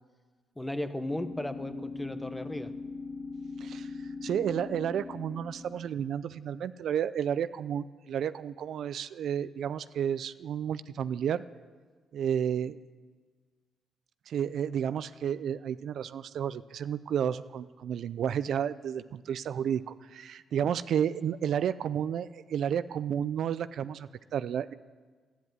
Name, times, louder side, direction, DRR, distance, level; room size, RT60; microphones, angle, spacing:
voice 1, 0.6-2.7, left 1 dB, 10° left, 10 dB, 1.0 m, -35 dB
sound 1, 1.1-6.1, left 4 dB, 55° left, 3.4 m, -41 dB
voice 2, 4.2-11.4 12.1-12.8 14.3-24.7, right 9 dB, 65° right, 14 dB, 0.4 m, -31 dB
12.0 x 10.0 x 9.3 m, 1.5 s
cardioid pair, 90°, 0 cm